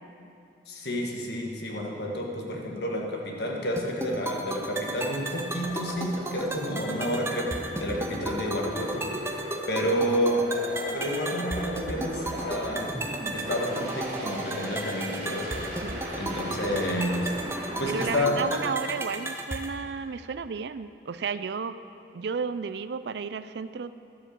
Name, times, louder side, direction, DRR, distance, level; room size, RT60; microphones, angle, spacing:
voice 1, 0.7-9.1 9.7-10.4 10.9-12.9 13.3-15.7 16.2-17.3 17.8-18.4, equal, 65° left, 0 dB, 1.6 m, -30 dB
sound 1, 3.8-19.8, right 1 dB, 15° right, 0.6 m, -35 dB
sound 2, 5.6-18.2, right 1 dB, 45° right, 2.2 m, -37 dB
voice 2, 17.8-21.8 22.1-23.9, right 5 dB, 65° right, 13 dB, 0.4 m, -33 dB
12.0 x 7.5 x 6.6 m, 2.5 s
head